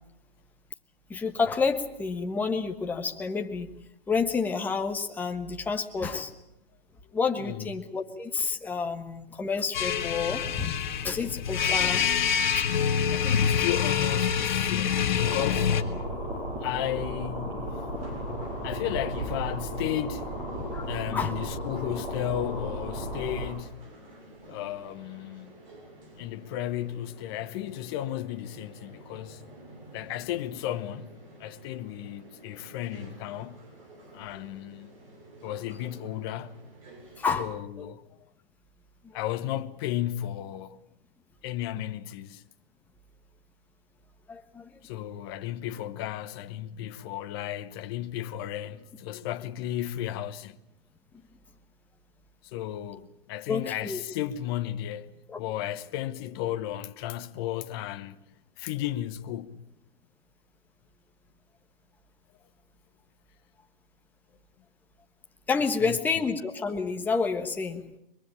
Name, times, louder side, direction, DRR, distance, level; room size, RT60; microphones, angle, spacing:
voice 1, 1.1-3.7 4.1-6.3 7.1-12.0 12.5-12.7 20.7-21.4 37.2-37.5 37.8-37.9 44.3-44.7 53.5-54.0 55.3-55.4 65.5-67.8, left 5 dB, 5° left, 1.3 m, -29 dB
voice 2, 7.4-7.7 11.7-12.1 13.1-15.7 16.6-17.9 18.6-20.3 20.8-23.8 24.4-25.6 26.2-29.4 29.9-31.1 31.4-33.6 34.1-34.9 35.4-36.6 37.4-38.0 39.1-40.8 41.4-42.4 44.8-50.6 52.4-55.1 55.4-58.2 58.6-59.6 65.8-66.0, left 12 dB, 25° left, 1.0 m, -34 dB
sound 1, 9.7-15.8, left 7 dB, 50° left, 1.8 m, -26 dB
sound 2, 15.2-23.5, equal, 15° right, 6.8 m, -34 dB
sound 3, 18.0-37.2, right 2 dB, 35° right, 7.5 m, -51 dB
23.0 x 22.0 x 8.9 m
hypercardioid pair, 145°, 29 cm